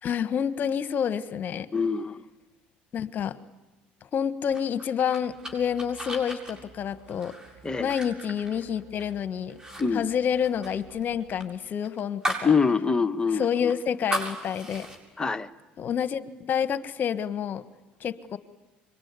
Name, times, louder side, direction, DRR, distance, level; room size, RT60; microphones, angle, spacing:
voice 1, 0.0-1.7 2.9-3.4 4.1-7.3 7.8-9.6 9.9-12.5 13.3-14.9 15.8-17.6 18.0-18.4, left 8 dB, 45° left, 12 dB, 1.4 m, -28 dB
voice 2, 1.7-2.2 7.6-7.9 9.8-10.1 12.4-13.7 15.2-15.5, left 5 dB, 20° left, 8 dB, 1.4 m, -25 dB
sound 1, 4.5-9.1 9.5-9.8 10.1-12.5 12.9-13.0 13.4-15.0, right 1 dB, 15° right, 7.5 m, -36 dB
sound 2, 5.2-11.5, right 5 dB, 55° right, 7.3 m, -54 dB
26.0 x 23.5 x 9.7 m, 1.1 s
supercardioid pair, 80°, 4 cm